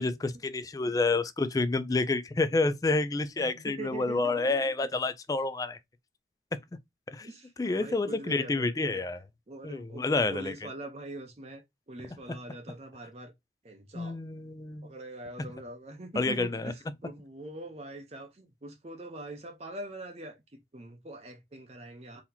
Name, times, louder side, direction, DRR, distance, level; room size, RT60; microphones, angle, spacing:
voice 1, 0.0-5.8 7.1-7.3 7.6-9.2 9.6-10.5 13.9-14.9 16.2-16.7, left 3 dB, 20° left, 0.3 m, -29 dB
voice 2, 3.4-4.7 7.2-9.0 9.5-13.3 13.6-14.2 14.8-22.2, right 2 dB, 35° right, 0.7 m, -43 dB
3.9 x 2.8 x 2.7 m
head